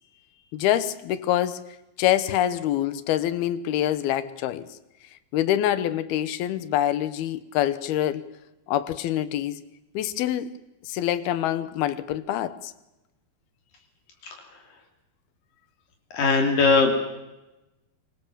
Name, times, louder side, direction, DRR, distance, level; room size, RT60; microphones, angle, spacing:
voice 1, 0.5-1.6 2.0-4.7 5.3-8.3 8.7-9.6 9.9-10.5 10.8-12.7, left 12 dB, 85° left, 14 dB, 3.0 m, -25 dB
voice 2, 16.1-16.9, left 4 dB, 65° left, 3 dB, 4.4 m, -19 dB
25.5 x 24.5 x 7.4 m, 0.99 s
omnidirectional pair, 4.3 m